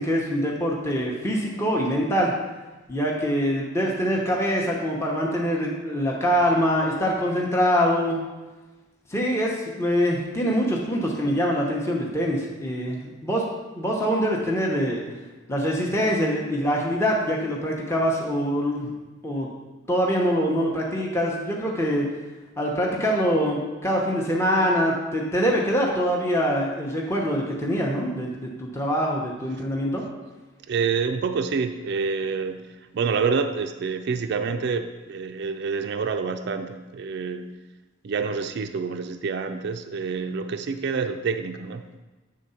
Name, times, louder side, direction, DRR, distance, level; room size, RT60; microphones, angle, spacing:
voice 1, 0.0-2.3 2.9-8.2 9.1-13.4 13.7-15.0 15.5-18.9 19.2-19.5 19.9-22.0 22.6-30.0, equal, 15° left, -2 dB, 0.8 m, -24 dB
voice 2, 30.7-37.5 38.0-42.0, right 5 dB, 55° right, 7 dB, 0.4 m, -27 dB
7.6 x 3.7 x 5.5 m, 1.2 s
head